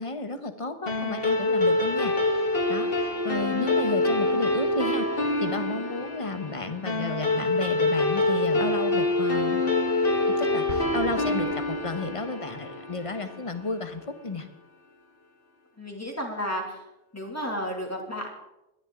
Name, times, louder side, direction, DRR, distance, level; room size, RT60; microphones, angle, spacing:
voice 1, 0.0-5.1 5.4-9.6 10.3-14.5, left 3 dB, 30° left, 8 dB, 1.1 m, -33 dB
sound 1, 0.9-13.6, left 2 dB, 55° left, 2.0 m, -26 dB
Explosion, 10.7-12.4, right 4 dB, 45° right, 1.1 m, -42 dB
voice 2, 15.8-16.8 17.1-18.3, equal, 15° left, 0 dB, 2.5 m, -32 dB
21.0 x 11.0 x 3.8 m, 0.93 s
omnidirectional pair, 1.1 m